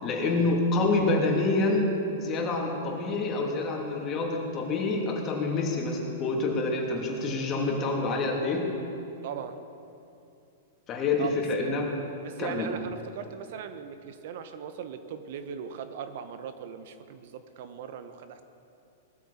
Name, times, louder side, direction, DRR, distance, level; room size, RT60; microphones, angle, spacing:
voice 1, 0.0-8.7 10.9-11.9 12.4-12.7, left 3 dB, 30° left, 0 dB, 2.9 m, -27 dB
voice 2, 9.2-9.6 11.2-11.7 12.2-18.4, right 7 dB, 60° right, 9 dB, 0.9 m, -39 dB
19.0 x 13.0 x 4.3 m, 2.7 s
hypercardioid pair, 120°, 0 cm